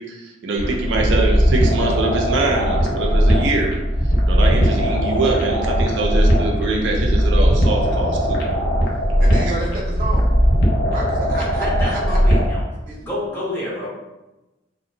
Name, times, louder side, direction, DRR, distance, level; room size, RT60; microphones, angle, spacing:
voice 1, 0.0-3.8 4.2-8.4, right 3 dB, 80° right, 0 dB, 0.4 m, -23 dB
sound 1, 0.6-12.6, equal, 55° left, 0.5 m, -18 dB
voice 2, 9.2-10.4 10.9-12.2 12.9-13.0, right 1 dB, 50° right, -5 dB, 0.8 m, -29 dB
voice 3, 11.6-12.6 13.0-13.9, left 1 dB, 15° left, -7 dB, 0.7 m, -28 dB
2.6 x 2.1 x 2.6 m, 1.1 s
head